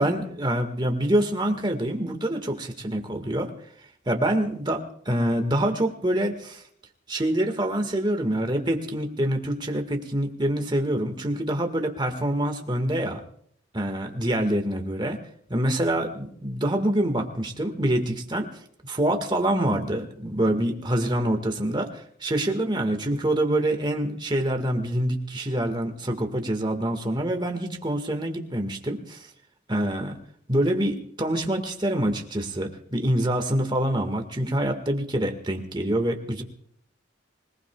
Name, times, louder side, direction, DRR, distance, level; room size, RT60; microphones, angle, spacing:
voice 1, 0.0-3.5 4.0-6.6 7.1-13.2 13.7-15.2 15.5-29.3 29.7-30.2 30.5-36.4, right 1 dB, 25° right, 5 dB, 1.6 m, -26 dB
25.5 x 19.0 x 2.3 m, 0.65 s
head